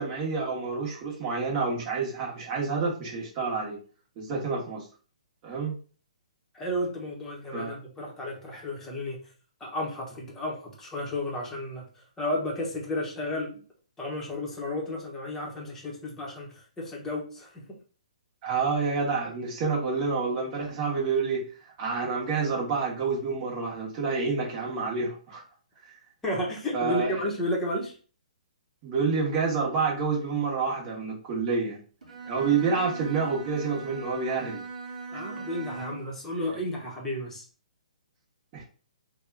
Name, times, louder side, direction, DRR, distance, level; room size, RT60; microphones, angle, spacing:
voice 1, 0.0-3.8 4.2-4.8 5.4-5.7 7.5-7.8 18.4-25.4 26.7-27.2 28.8-31.8 32.2-34.6 35.1-35.2 38.5-38.6, right 4 dB, 30° right, -3 dB, 1.1 m, -28 dB
voice 2, 6.5-9.2 9.6-13.6 14.0-17.6 26.2-27.9 35.1-37.4, left 1 dB, 10° left, -3 dB, 0.9 m, -32 dB
Bowed string instrument, 32.0-36.2, right 4 dB, 80° right, 1.2 m, -40 dB
2.7 x 2.3 x 3.4 m, 0.39 s
hypercardioid pair, 140°, 4 cm